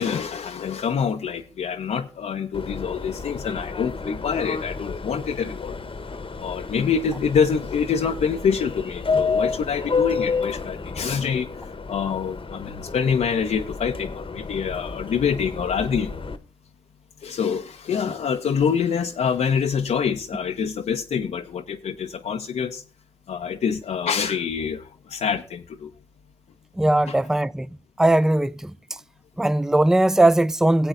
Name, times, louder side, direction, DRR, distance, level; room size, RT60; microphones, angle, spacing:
voice 1, 0.0-5.8 6.4-11.5 11.9-16.2 17.2-22.8 23.3-25.9 27.1-27.2, left 6 dB, 85° left, 0.5 m, -26 dB
Subway metro underground, 2.5-16.4, left 4 dB, 50° left, 0.9 m, -30 dB
voice 2, 26.8-27.7 28.0-28.7 29.4-30.9, right 1 dB, 5° right, 0.4 m, -19 dB
17.0 x 7.9 x 2.4 m
cardioid pair, 40°, 11 cm